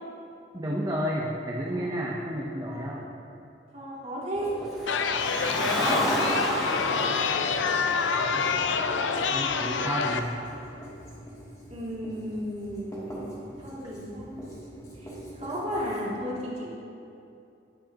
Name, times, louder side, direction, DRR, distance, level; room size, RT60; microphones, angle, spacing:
voice 1, 0.5-3.1 6.3-6.4 9.3-10.3, equal, 20° right, -4 dB, 0.8 m, -31 dB
voice 2, 3.7-4.5 5.7-6.4 11.7-14.7 15.0-16.7, equal, 40° right, -6 dB, 2.6 m, -34 dB
Writing, 4.3-16.0, equal, 20° left, 2.7 m, -42 dB
Car, 4.8-9.2, equal, ahead, 2.1 m, -31 dB
Chatter, 4.9-10.2, left 5 dB, 85° left, 0.5 m, -27 dB
19.0 x 8.0 x 3.0 m, 2.7 s
head